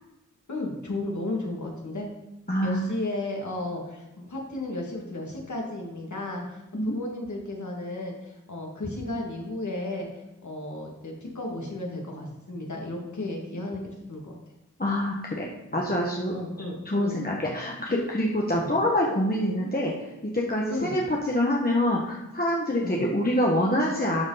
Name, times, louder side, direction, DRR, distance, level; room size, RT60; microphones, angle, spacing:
voice 1, 0.5-2.1 2.6-10.1 10.4-14.3 15.7-15.8 16.3-17.2 18.5-18.7 20.7-20.9 22.8-23.0, left 2 dB, 65° left, -1 dB, 2.4 m, -34 dB
voice 2, 2.5-2.8 6.7-7.0 14.8-16.3 16.8-19.9 20.3-24.2, left 1 dB, 30° left, -2 dB, 1.4 m, -26 dB
12.0 x 5.2 x 4.2 m, 0.96 s
wide cardioid pair, 60°, 31 cm